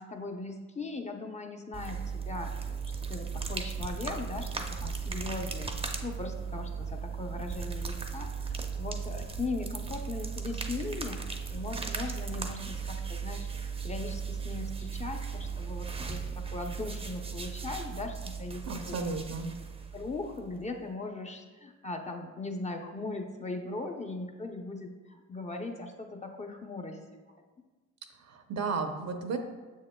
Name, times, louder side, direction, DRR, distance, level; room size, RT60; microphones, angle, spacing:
voice 1, 0.0-2.5 3.1-11.2 11.5-19.0 19.9-27.0, left 3 dB, 25° left, 3 dB, 0.6 m, -39 dB
sound 1, 1.7-20.6, right 5 dB, 20° right, 0.6 m, -37 dB
voice 2, 18.7-19.5 28.2-29.4, right 4 dB, 60° right, 6 dB, 0.7 m, -33 dB
7.0 x 6.4 x 2.2 m, 1.3 s
cardioid pair, 90°, 30 cm